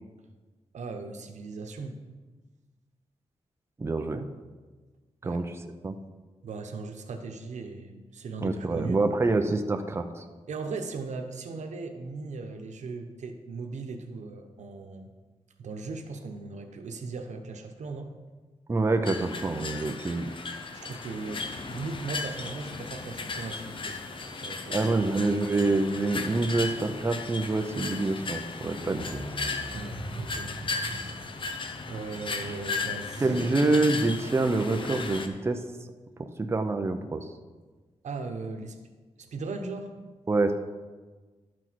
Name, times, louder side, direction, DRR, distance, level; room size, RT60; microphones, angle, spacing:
voice 1, 0.7-2.0 5.2-5.4 6.4-9.1 10.5-15.1 15.6-18.1 20.7-24.1 24.4-25.1 29.7-30.6 31.9-33.7 38.0-38.8 39.2-39.9, right 3 dB, 90° right, 5 dB, 0.9 m, -38 dB
voice 2, 3.8-4.3 5.2-5.5 5.8-5.9 8.4-10.2 18.7-20.3 24.7-29.0 33.2-35.6 36.4-37.2 40.3-40.5, right 3 dB, 20° right, 6 dB, 0.5 m, -26 dB
sound 1, 19.1-35.3, left 4 dB, 45° left, 0.8 m, -36 dB
sound 2, 28.7-33.5 33.7-33.8, right 1 dB, 25° left, 1.4 m, -41 dB
12.0 x 6.1 x 4.6 m, 1.3 s
wide cardioid pair, 165°, 12 cm